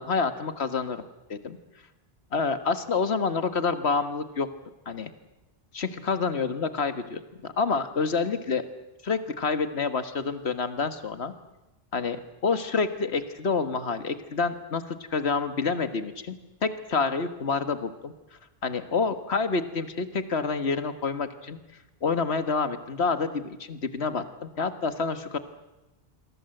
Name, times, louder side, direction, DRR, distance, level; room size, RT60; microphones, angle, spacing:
voice 1, 0.0-1.6 2.3-4.5 4.9-5.1 5.7-8.7 9.0-11.3 11.9-16.4 16.6-18.1 18.6-21.6 22.0-25.4, left 4 dB, 90° left, 11 dB, 1.8 m, -28 dB
27.5 x 22.5 x 7.9 m, 1.0 s
omnidirectional pair, 1.1 m